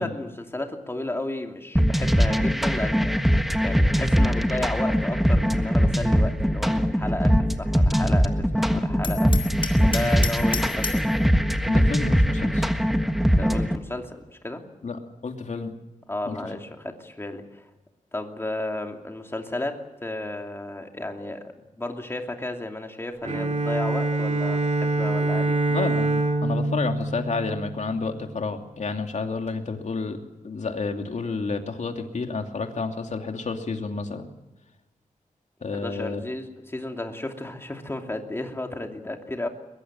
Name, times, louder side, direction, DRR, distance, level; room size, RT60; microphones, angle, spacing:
voice 1, 0.0-9.5 9.8-11.1 13.2-14.7 16.1-17.7 18.1-25.6 35.7-39.5, left 2 dB, 15° left, 3 dB, 2.7 m, -33 dB
sound 1, 1.8-13.8, equal, ahead, 1.4 m, -21 dB
Hammer, 9.0-11.1, left 5 dB, 40° left, 3.5 m, -32 dB
voice 2, 11.6-12.6 14.8-15.0 15.2-15.7 16.3-16.4 25.7-30.2 30.4-34.3 35.6-36.2, left 4 dB, 60° left, 4 dB, 2.8 m, -30 dB
Bowed string instrument, 23.2-28.1, right 2 dB, 55° right, 3.5 m, -25 dB
22.5 x 22.0 x 7.5 m, 0.99 s
wide cardioid pair, 140°, 14 cm